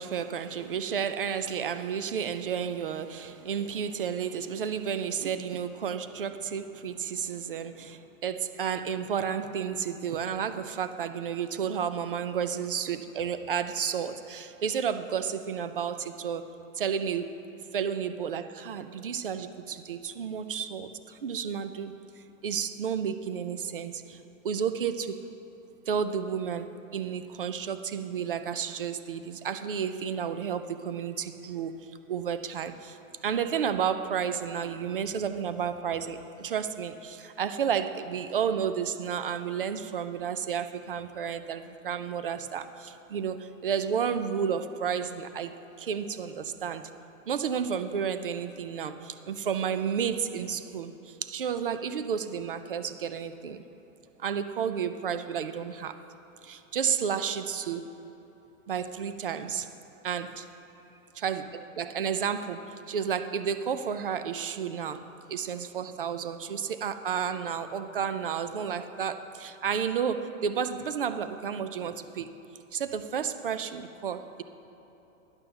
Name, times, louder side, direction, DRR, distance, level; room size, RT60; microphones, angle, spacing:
voice 1, 0.0-16.5 16.8-17.4 17.7-21.9 22.4-25.3 25.9-46.9 47.3-53.6 54.2-56.0 56.4-57.9 58.7-59.7 60.0-60.4 61.2-65.0 65.3-72.3 72.7-74.4, right 7 dB, 40° right, 11 dB, 0.4 m, -32 dB
10.5 x 6.7 x 7.8 m, 3.0 s
hypercardioid pair, 175°, 42 cm